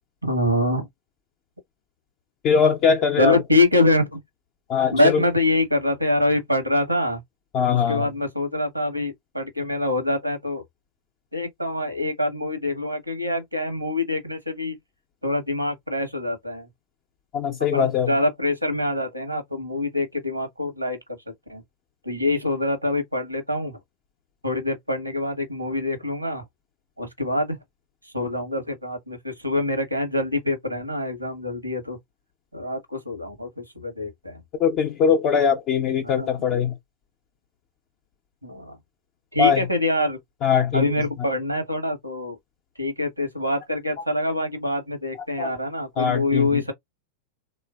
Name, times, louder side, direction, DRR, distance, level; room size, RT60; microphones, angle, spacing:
voice 1, 0.2-0.9 3.2-4.2 4.9-7.2 7.7-10.6 11.3-14.8 15.2-16.7 17.7-21.0 21.5-21.6 22.0-23.8 24.4-26.4 27.0-27.6 28.0-32.0 32.5-34.4 36.0-36.5 38.4-38.8 39.3-40.2 40.7-42.4 42.8-46.7, left 2 dB, 90° right, 1.0 m, -25 dB
voice 2, 2.4-3.4 4.7-5.0 7.5-8.1 17.3-18.1 34.6-36.7 39.4-39.6 40.4-40.9 45.4-45.5 46.0-46.6, left 7 dB, 40° left, 0.5 m, -21 dB
3.1 x 2.4 x 2.3 m
figure-of-eight pair, 90°, 0 cm